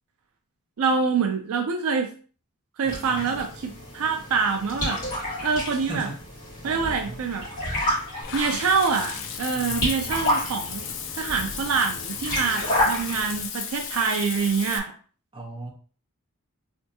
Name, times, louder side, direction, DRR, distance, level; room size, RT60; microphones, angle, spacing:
voice 1, 0.8-2.1 2.8-5.0 5.4-6.1 6.6-7.5 8.3-14.9, right 5 dB, 65° right, 4 dB, 0.4 m, -25 dB
voice 2, 2.8-3.5 5.8-6.2 6.6-7.2 9.5-10.3 13.1-13.2 15.3-15.7, right 2 dB, 20° right, -4 dB, 1.0 m, -38 dB
sound 1, 2.9-13.4, left 1 dB, 35° left, 1.6 m, -30 dB
Water / Bathtub (filling or washing), 8.2-14.8, left 7 dB, 55° left, 0.4 m, -34 dB
3.4 x 2.6 x 2.7 m, 0.40 s
head